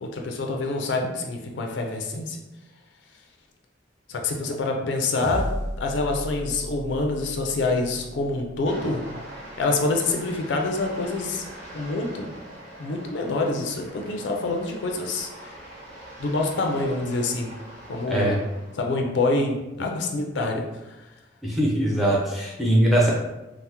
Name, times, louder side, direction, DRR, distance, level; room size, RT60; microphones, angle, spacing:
voice 1, 0.0-2.4 4.1-5.5 5.8-9.0 9.6-11.4 11.7-12.3 12.8-15.5 16.2-17.5 17.9-18.4 18.8-21.0, left 2 dB, 70° left, 2 dB, 0.4 m, -26 dB
sound 1, 5.2-9.8, equal, 80° right, 0.6 m, -35 dB
sound 2, 8.6-18.9, right 1 dB, 40° right, 1.3 m, -43 dB
voice 2, 18.1-18.4 21.4-23.1, right 1 dB, ahead, -4 dB, 0.5 m, -21 dB
3.3 x 2.0 x 2.8 m, 1.0 s
head